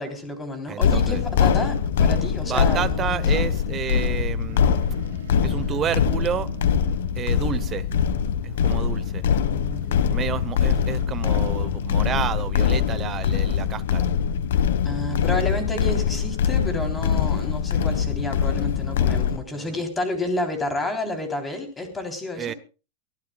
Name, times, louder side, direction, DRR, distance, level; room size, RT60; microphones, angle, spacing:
voice 1, 0.0-3.2 9.3-10.1 14.8-22.5, left 2 dB, 10° left, 3.5 m, -30 dB
voice 2, 0.7-1.2 2.4-4.7 5.4-6.5 7.1-7.9 8.4-9.2 10.1-14.1 19.5-19.8 22.3-22.5, right 9 dB, 25° right, 0.9 m, -30 dB
sound 1, 0.8-19.4, left 7 dB, 85° left, 1.4 m, -23 dB
sound 2, 4.5-8.0, right 9 dB, 80° right, 3.5 m, -39 dB
23.5 x 15.5 x 2.4 m
supercardioid pair, 155°, 0 cm